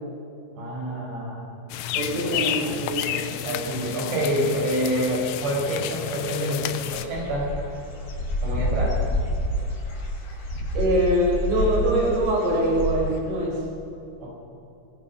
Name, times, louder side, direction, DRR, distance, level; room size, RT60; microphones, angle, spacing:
voice 1, 0.6-1.4 2.2-7.5 8.4-9.0 14.2-14.3, equal, 80° right, -2 dB, 7.6 m, -28 dB
sound 1, 1.7-7.1, left 12 dB, 85° left, 2.9 m, -31 dB
voice 2, 1.9-3.0 10.7-13.6, right 1 dB, 35° right, -2 dB, 5.3 m, -23 dB
Dog / Bird, 6.9-13.2, left 1 dB, 70° left, 6.4 m, -28 dB
24.0 x 20.0 x 5.7 m, 2.7 s
omnidirectional pair, 4.9 m